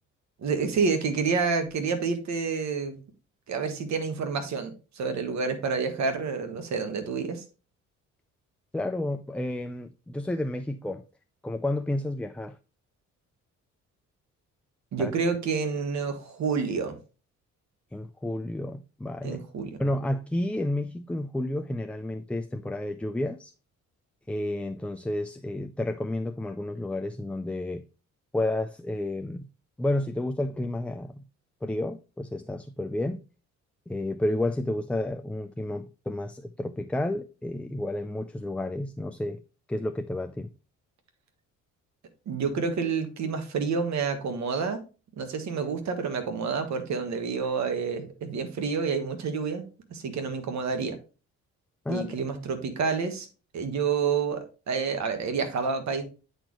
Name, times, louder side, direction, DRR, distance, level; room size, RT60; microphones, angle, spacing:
voice 1, 0.4-3.0 3.5-7.4 14.9-17.0 19.2-19.8 42.3-44.8 45.2-49.6 49.9-51.0 51.9-53.3 53.5-56.0, right 5 dB, 65° right, 1.4 m, -29 dB
voice 2, 8.7-11.0 11.4-12.6 15.0-15.1 17.9-19.4 19.8-23.5 24.3-27.8 28.3-29.5 29.8-31.2 31.6-33.2 33.9-39.4 39.7-40.5 51.9-52.3, left 1 dB, 5° left, 0.3 m, -31 dB
8.9 x 4.4 x 3.1 m
cardioid pair, 90°, 30 cm